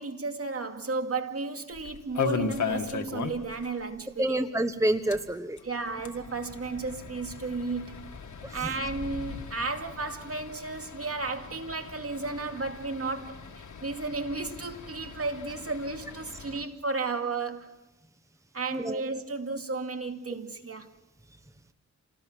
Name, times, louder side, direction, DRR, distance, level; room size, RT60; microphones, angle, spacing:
voice 1, 0.0-4.4 5.6-8.0 8.5-17.8 18.5-20.9, right 3 dB, 50° right, 2.4 m, -33 dB
sound 1, 1.7-3.7 3.9-4.0 4.3-4.4 5.0-16.6, left 5 dB, 70° left, 1.9 m, -38 dB
voice 2, 4.2-5.6 8.4-8.7 18.7-19.0, right 1 dB, 10° right, 1.2 m, -28 dB
27.5 x 19.0 x 6.2 m
cardioid pair, 60°, 31 cm